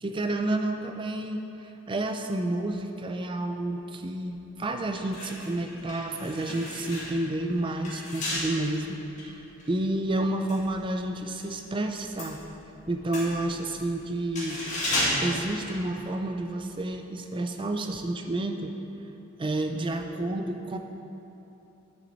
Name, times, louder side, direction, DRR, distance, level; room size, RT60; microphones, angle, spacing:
voice 1, 0.0-9.4 9.7-12.4 12.9-14.6 15.2-18.7 19.4-20.8, right 1 dB, 20° right, 6 dB, 0.4 m, -30 dB
sound 1, 4.3-4.4 4.9-11.5 11.8-16.4 16.7-16.9, left 1 dB, 35° left, 1.9 m, -34 dB
9.7 x 6.4 x 4.0 m, 3.0 s
head